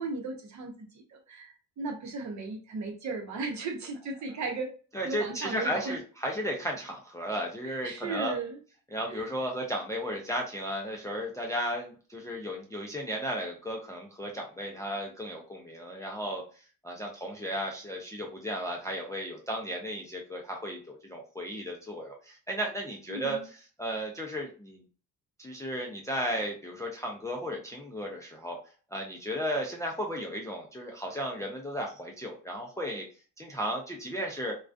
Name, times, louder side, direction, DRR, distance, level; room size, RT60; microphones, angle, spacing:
voice 1, 0.0-4.7 5.0-6.0 7.6-8.6 9.1-9.3 23.1-23.4, right 3 dB, 55° right, 3 dB, 0.8 m, -36 dB
voice 2, 4.9-8.4 8.9-16.4 16.8-24.8 25.4-28.6 28.9-33.0 33.4-34.5, equal, 10° left, -1 dB, 0.3 m, -34 dB
2.3 x 2.2 x 2.4 m, 0.38 s
cardioid pair, 125°, 35 cm